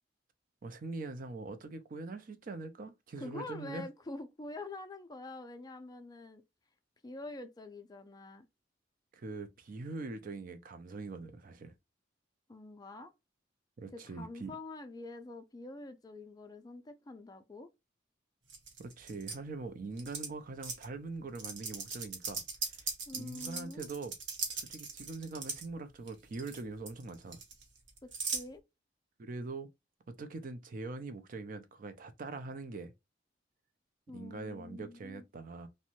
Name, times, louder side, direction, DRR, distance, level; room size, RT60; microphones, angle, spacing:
voice 1, 0.6-3.9 9.1-11.7 13.8-14.5 18.8-22.4 22.8-22.9 23.2-24.1 24.5-27.4 29.2-29.7 30.1-32.9 34.1-35.7, right 3 dB, 50° right, 0.4 m, -43 dB
voice 2, 3.2-6.4 7.0-8.5 12.5-13.1 13.9-17.7 23.1-23.9 28.0-28.6 34.1-35.2, left 2 dB, 20° left, 0.4 m, -46 dB
sound 1, 18.5-19.3 20.0-20.3 20.6-20.9 21.3-25.7 26.1-26.6 26.9-28.4, right 4 dB, 80° right, 0.8 m, -39 dB
2.6 x 2.1 x 2.8 m
head